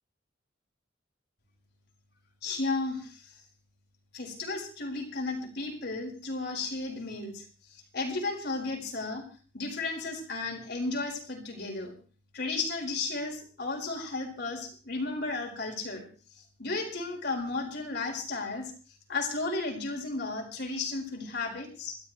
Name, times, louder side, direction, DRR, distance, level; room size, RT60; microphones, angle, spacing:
voice 1, 2.4-3.3 4.1-7.4 7.7-9.2 9.5-11.9 12.3-16.1 16.6-18.7 19.1-22.0, left 3 dB, 65° left, 1 dB, 4.7 m, -34 dB
28.0 x 12.5 x 3.2 m, 0.40 s
head